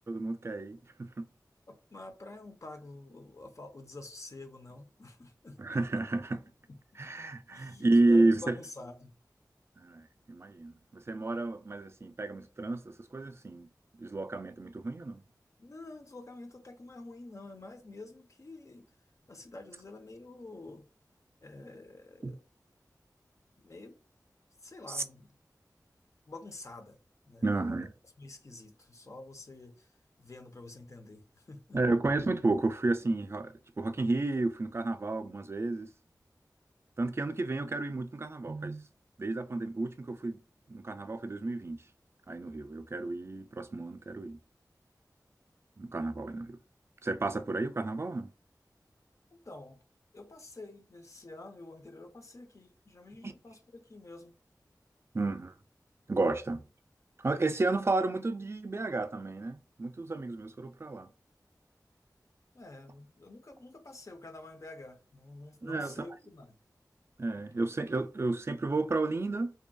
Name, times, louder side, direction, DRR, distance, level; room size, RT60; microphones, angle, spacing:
voice 1, 0.1-1.2 5.6-6.4 7.0-8.5 9.8-13.7 14.0-15.2 22.2-22.3 24.9-25.0 27.4-27.9 31.7-35.9 37.0-38.9 39.2-40.4 40.7-41.8 42.3-44.4 45.8-46.6 47.0-48.3 53.2-53.3 55.1-55.5 56.1-56.6 57.2-61.1 65.6-66.1 67.2-69.5, right 2 dB, 40° right, 0.3 m, -31 dB
voice 2, 1.7-6.0 6.7-6.8 7.5-9.1 15.6-18.9 19.3-20.9 21.4-22.4 23.6-24.0 24.6-25.3 26.3-27.0 27.3-27.9 28.2-29.9 30.2-31.8 49.3-49.8 50.1-54.3 62.5-66.6, left 2 dB, 50° left, 0.5 m, -48 dB
2.7 x 2.4 x 2.2 m
wide cardioid pair, 45°, 7 cm